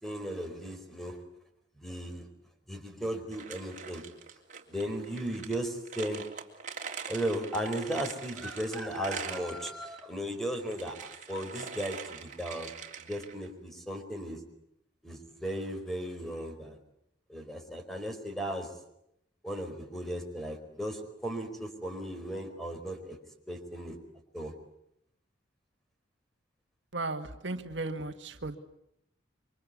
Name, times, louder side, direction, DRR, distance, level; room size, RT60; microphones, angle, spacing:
voice 1, 0.0-1.2 1.8-2.3 2.7-4.0 4.7-6.2 7.1-12.7 13.0-14.4 15.0-16.8 17.3-18.7 19.4-23.2 23.5-23.9 24.3-24.5, right 1 dB, ahead, 5 dB, 4.5 m, -36 dB
sound 1, 3.3-10.0 10.5-13.5, right 6 dB, 40° right, 3.3 m, -43 dB
voice 2, 26.9-28.6, right 2 dB, 70° right, 7 dB, 1.8 m, -35 dB
27.5 x 25.0 x 8.4 m, 0.78 s
head